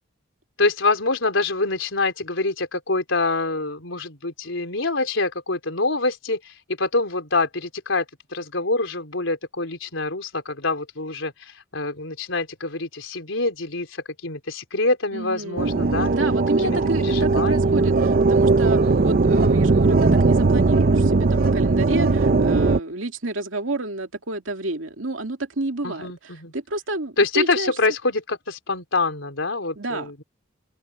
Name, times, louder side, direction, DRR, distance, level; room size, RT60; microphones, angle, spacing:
voice 1, 0.6-8.1 8.3-16.1 16.6-17.9 18.8-19.2 25.8-26.5 27.2-30.2, left 3 dB, 85° left, 3.8 m, -26 dB
voice 2, 15.1-15.7 16.1-26.1 26.5-27.7 29.8-30.1, right 2 dB, 85° right, 2.6 m, -29 dB
sound 1, 15.6-22.8, right 3 dB, 50° right, 0.6 m, -19 dB
head